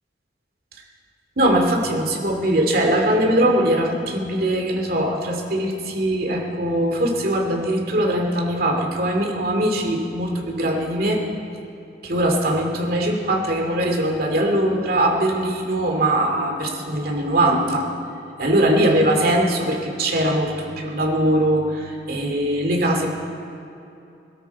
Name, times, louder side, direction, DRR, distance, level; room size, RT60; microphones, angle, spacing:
voice 1, 1.4-11.2 12.0-17.9 18.4-23.1, right 1 dB, 55° right, 1 dB, 2.4 m, -21 dB
21.5 x 12.5 x 4.6 m, 2.7 s
head